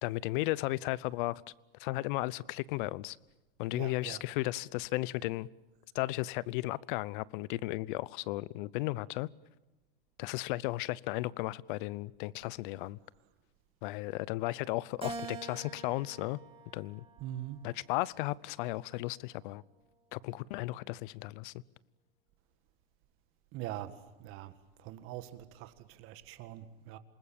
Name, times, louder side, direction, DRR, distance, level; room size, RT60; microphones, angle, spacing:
voice 1, 0.0-1.4 1.8-3.2 3.6-5.5 5.9-9.3 10.2-13.0 13.8-16.4 16.7-17.0 17.6-19.6 20.1-21.5, left 19 dB, 60° left, 0.8 m, -35 dB
voice 2, 3.7-4.2 17.2-17.6 23.5-23.9 24.2-24.5 24.8-27.0, right 13 dB, 45° right, 1.9 m, -43 dB
Keyboard (musical), 15.0-17.5 18.1-19.3, right 3 dB, 20° right, 4.0 m, -46 dB
27.5 x 20.0 x 8.8 m
supercardioid pair, 125°, 29 cm